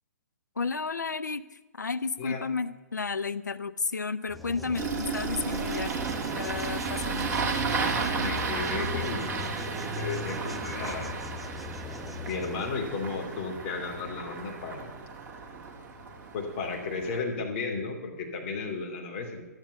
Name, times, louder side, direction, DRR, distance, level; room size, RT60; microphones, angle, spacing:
voice 1, 0.6-5.9 6.3-7.5, left 4 dB, 85° left, 12 dB, 0.6 m, -32 dB
sound 1, 4.3-12.7, left 2 dB, ahead, 0.6 m, -42 dB
Engine starting, 4.7-17.2, right 4 dB, 20° right, 2.1 m, -33 dB
voice 2, 7.1-7.5 8.2-11.2 12.2-14.9 16.3-19.5, left 4 dB, 40° left, 2 dB, 2.8 m, -34 dB
13.0 x 11.0 x 6.9 m, 1.3 s
figure-of-eight pair, 130°, 9 cm